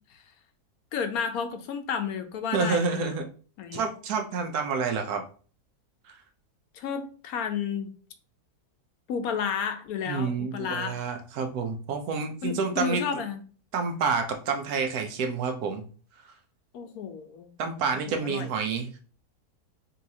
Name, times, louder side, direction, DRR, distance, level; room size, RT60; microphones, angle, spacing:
voice 1, 0.9-3.2 3.6-3.9 6.7-7.9 9.1-11.0 12.4-13.4 16.7-17.5 18.1-18.5, left 7 dB, 75° left, 7 dB, 1.1 m, -32 dB
voice 2, 2.5-3.3 3.7-5.2 10.1-13.0 13.7-15.8 17.6-18.9, right 5 dB, 75° right, 5 dB, 1.2 m, -28 dB
5.4 x 2.8 x 2.8 m, 0.39 s
omnidirectional pair, 1.7 m